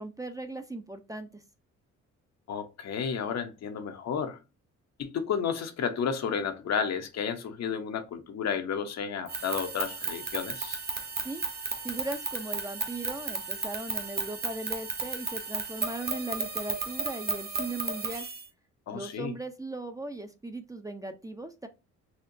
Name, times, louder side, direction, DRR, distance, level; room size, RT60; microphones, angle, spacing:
voice 1, 0.0-1.4 11.2-11.4 11.8-18.3 18.9-21.7, right 2 dB, 10° right, 0.6 m, -38 dB
voice 2, 2.5-4.4 5.0-10.8 18.9-19.3, left 7 dB, 60° left, 0.9 m, -32 dB
sound 1, 9.3-18.4, right 4 dB, 30° right, 1.0 m, -34 dB
4.3 x 2.8 x 2.6 m
cardioid pair, 90°, 30 cm